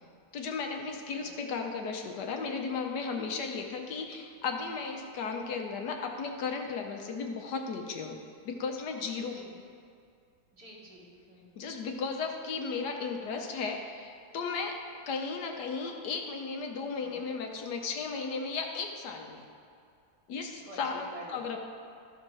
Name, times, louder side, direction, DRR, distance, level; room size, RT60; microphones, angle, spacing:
voice 1, 0.3-8.2 8.4-9.4 11.6-14.8 15.1-19.4 20.3-21.7, left 5 dB, 75° left, 3 dB, 1.5 m, -35 dB
voice 2, 10.5-11.5 15.8-15.9 17.0-17.2 20.5-21.4, right 1 dB, 65° right, -5 dB, 2.8 m, -49 dB
13.0 x 4.4 x 6.0 m, 2.4 s
omnidirectional pair, 1.8 m